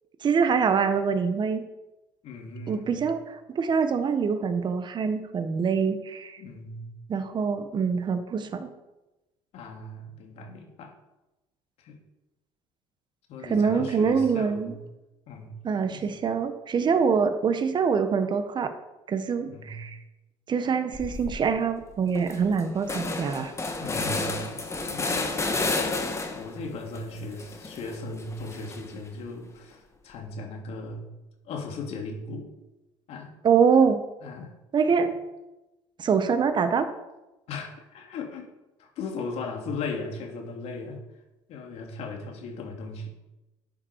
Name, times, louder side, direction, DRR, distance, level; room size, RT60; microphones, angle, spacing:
voice 1, 0.2-1.6 2.7-6.4 7.1-8.7 13.4-14.7 15.6-18.7 19.1-20.0 20.5-23.5 33.4-34.0 34.7-35.1 36.0-36.9, right 6 dB, 40° right, 8 dB, 1.6 m, -24 dB
voice 2, 2.2-3.0 6.4-6.9 9.5-10.9 11.8-12.0 13.3-14.8 15.3-15.5 15.9-16.1 19.5-19.9 23.8-24.6 24.9-25.4 26.3-31.1 31.4-32.5 33.1-33.4 34.2-34.5 35.1-35.2 37.5-38.5 38.8-41.0 41.5-43.1, left 3 dB, 65° left, 2 dB, 2.9 m, -37 dB
sound 1, 20.9-21.4 21.8-21.9 22.1-26.6 26.9-29.1, left 3 dB, 25° left, 1.8 m, -31 dB
12.5 x 9.5 x 5.0 m, 1.0 s
supercardioid pair, 85°, 12 cm